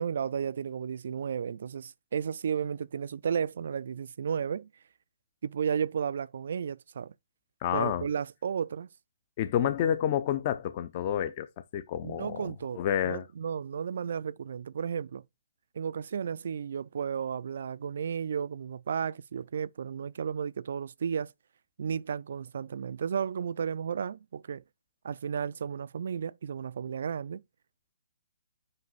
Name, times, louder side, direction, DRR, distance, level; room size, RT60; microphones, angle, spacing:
voice 1, 0.0-4.7 5.4-7.1 7.7-8.9 9.6-9.7 12.0-15.2 15.8-21.3 21.8-24.6 25.0-27.4, right 7 dB, 65° right, 0.3 m, -33 dB
voice 2, 7.6-8.0 9.4-11.5 11.7-12.4 12.7-13.2, left 10 dB, 35° left, 0.6 m, -29 dB
5.4 x 5.4 x 4.0 m
hypercardioid pair, 150°, 0 cm